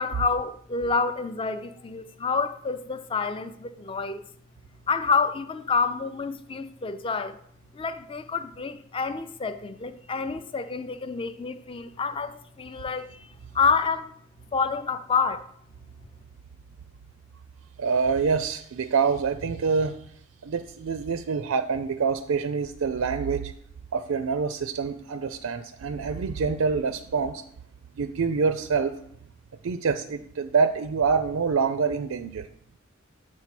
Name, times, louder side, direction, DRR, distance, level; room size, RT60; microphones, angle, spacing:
voice 1, 0.0-4.2 4.9-7.4 7.7-14.1 14.5-15.5, left 5 dB, 25° left, 0.4 m, -28 dB
voice 2, 17.8-19.9 20.4-23.5 23.9-27.4 28.0-29.0 29.6-32.5, right 5 dB, 80° right, 0.4 m, -26 dB
7.6 x 4.6 x 5.8 m
head